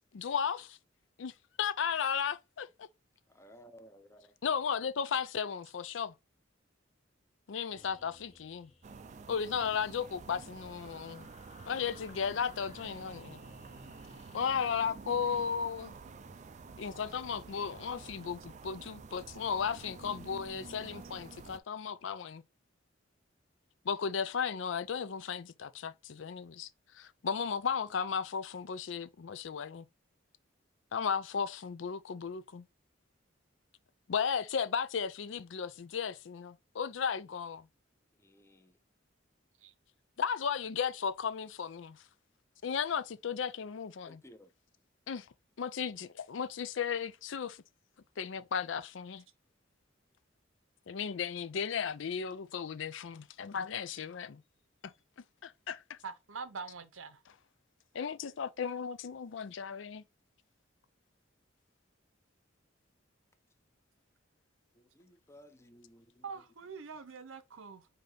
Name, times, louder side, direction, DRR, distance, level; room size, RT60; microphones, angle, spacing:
voice 1, 0.1-0.8 1.2-1.3 1.6-2.9 4.4-6.1 7.5-8.7 9.3-11.3 11.7-13.4 14.3-16.0 16.8-22.4 23.8-29.9 30.9-32.6 34.1-37.7 40.2-42.0 42.6-44.2 45.1-45.3 45.6-47.6 48.2-49.2 50.9-54.4 54.8-54.9 55.4-56.0 57.9-60.0, left 6 dB, 70° left, 0.5 m, -35 dB
voice 2, 3.3-4.3 38.2-38.8 44.0-44.5 64.7-66.2, equal, 15° left, 0.6 m, -57 dB
sound 1, 7.7-14.9, left 3 dB, 35° left, 1.3 m, -59 dB
sound 2, 8.8-21.6, right 4 dB, 35° right, 0.4 m, -50 dB
voice 3, 56.0-57.2 66.2-67.9, right 5 dB, 90° right, 0.8 m, -44 dB
5.1 x 2.8 x 3.7 m
head